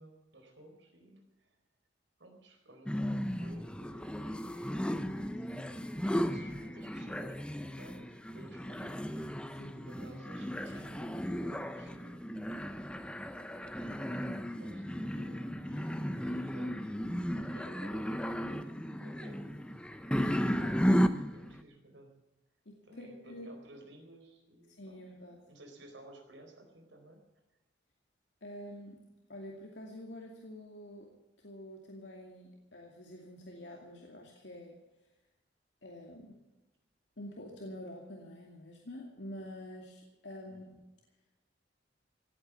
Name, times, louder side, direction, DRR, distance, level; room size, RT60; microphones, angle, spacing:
voice 1, 0.0-1.6 2.2-5.4 6.2-9.2 9.8-12.3 12.5-13.1 13.4-20.0 20.3-22.2 22.9-25.0 25.5-27.2 40.4-40.7, right 1 dB, 80° right, 3 dB, 4.3 m, -55 dB
sound 1, 2.9-21.6, equal, 5° left, 0.7 m, -35 dB
voice 2, 9.5-9.9 22.7-23.5 24.7-25.4 28.4-29.0 29.3-31.1 31.4-34.8 35.8-36.4 37.2-40.8, left 1 dB, 70° left, 0 dB, 2.4 m, -47 dB
17.0 x 8.9 x 8.3 m, 1.0 s
head